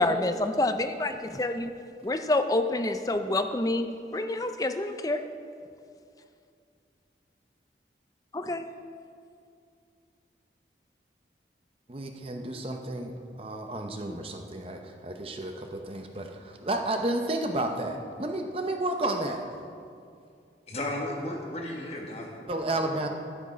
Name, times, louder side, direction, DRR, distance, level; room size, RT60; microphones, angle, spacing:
voice 1, 0.0-1.7 2.0-3.9 4.1-5.2 8.3-8.7, left 2 dB, 20° left, 8 dB, 0.4 m, -27 dB
voice 2, 11.9-19.6 22.5-23.1, right 1 dB, 30° right, 4 dB, 0.7 m, -32 dB
voice 3, 20.7-22.3 22.8-23.1, left 1 dB, 35° left, -1 dB, 1.4 m, -34 dB
12.0 x 9.9 x 5.1 m, 2.4 s
head